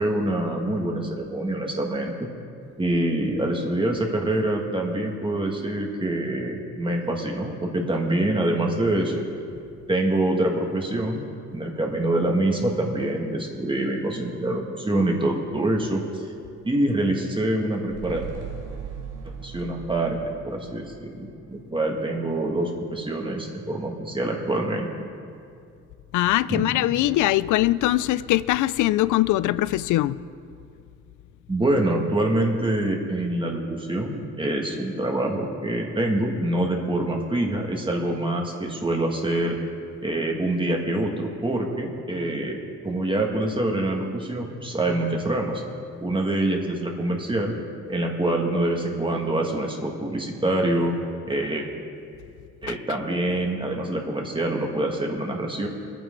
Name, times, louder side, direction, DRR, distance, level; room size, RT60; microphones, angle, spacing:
voice 1, 0.0-2.3 2.8-9.2 9.9-11.2 11.5-16.0 16.6-18.3 19.2-20.2 20.4-24.9 26.5-26.6 31.5-39.6 40.0-42.6 42.8-45.6 46.0-47.6 47.9-51.0 51.3-51.7 52.6-55.7, right 1 dB, 15° right, 1.9 m, -25 dB
sound 1, 17.9-22.4 22.7-22.8, right 7 dB, 80° right, 1.2 m, -39 dB
voice 2, 26.1-30.2 52.7-52.8, left 15 dB, 80° left, 0.5 m, -22 dB
22.0 x 9.2 x 3.9 m
cardioid pair, 90°, 30 cm